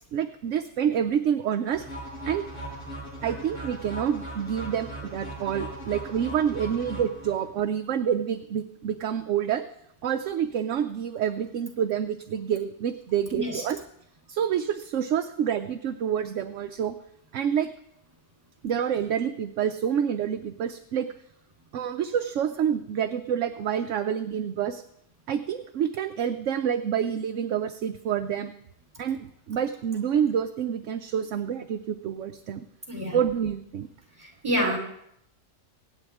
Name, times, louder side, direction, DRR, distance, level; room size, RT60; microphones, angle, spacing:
voice 1, 0.1-1.9 2.3-2.5 3.2-9.6 10.0-13.8 14.3-17.0 17.3-17.7 18.6-21.1 21.7-24.8 25.3-28.5 29.0-29.2 29.5-32.7 33.1-33.9, right 8 dB, 70° right, 7 dB, 1.0 m, -27 dB
sound 1, 1.7-7.7, right 1 dB, 50° left, 7.7 m, -39 dB
voice 2, 13.3-13.6 32.9-33.2 34.2-34.8, equal, 25° right, -2 dB, 3.8 m, -28 dB
24.5 x 9.2 x 3.5 m, 0.76 s
omnidirectional pair, 1.4 m